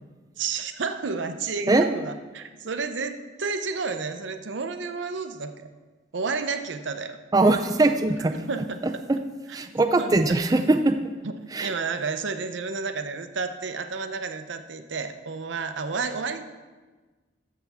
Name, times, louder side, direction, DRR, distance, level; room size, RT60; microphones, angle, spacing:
voice 1, 0.4-5.7 6.1-7.2 8.3-8.8 10.0-10.1 11.2-16.4, right 4 dB, 80° right, 8 dB, 0.7 m, -31 dB
voice 2, 7.3-8.3 9.1-9.2 9.5-11.0 11.5-11.7, right 2 dB, 20° right, 7 dB, 0.3 m, -21 dB
13.5 x 6.9 x 3.5 m, 1.3 s
head